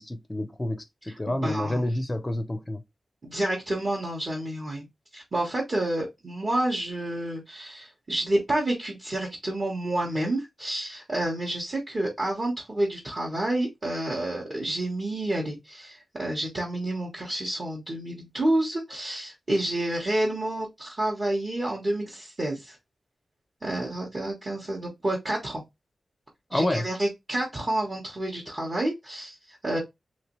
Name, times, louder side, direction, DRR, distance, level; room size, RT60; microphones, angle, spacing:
voice 1, 0.0-2.8 26.5-26.8, left 1 dB, 15° left, 0.5 m, -29 dB
voice 2, 1.3-1.8 3.2-4.9 5.1-22.8 23.6-25.6 26.5-29.8, right 1 dB, 30° right, 1.0 m, -29 dB
3.1 x 3.0 x 3.0 m
wide cardioid pair, 140°, 0 cm